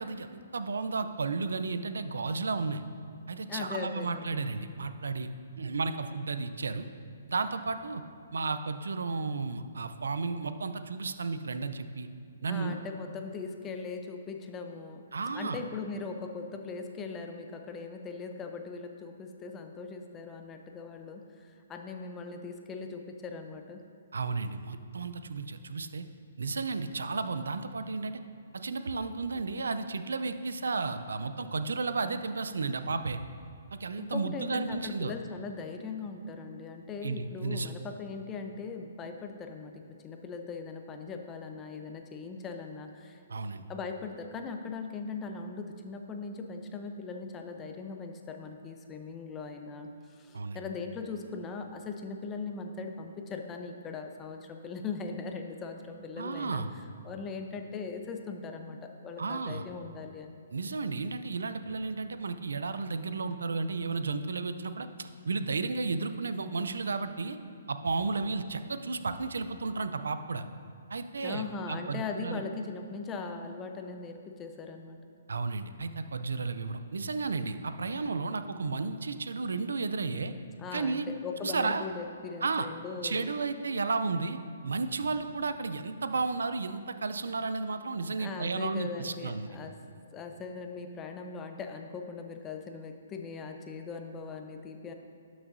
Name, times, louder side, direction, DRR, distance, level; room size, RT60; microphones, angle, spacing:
voice 1, 0.0-2.8 3.3-5.3 5.6-6.9 7.3-8.0 8.3-12.1 12.4-12.8 15.1-15.6 24.1-26.0 26.4-28.2 28.5-33.2 33.7-35.1 37.0-37.7 43.3-43.6 50.3-50.6 56.2-56.7 59.2-59.7 60.5-67.4 67.7-70.4 70.9-72.4 75.3-80.3 80.7-81.1 81.4-81.8 82.4-82.7 83.0-84.4 84.6-89.5, right 4 dB, 75° right, 10 dB, 0.5 m, -33 dB
voice 2, 3.5-4.4 12.5-15.0 15.3-23.8 34.0-43.2 43.7-56.7 57.0-60.4 71.2-75.0 80.6-83.3 88.2-89.7 90.1-94.9, left 4 dB, 20° left, 5 dB, 0.6 m, -40 dB
12.0 x 6.3 x 2.6 m, 2.3 s
hypercardioid pair, 135°, 0 cm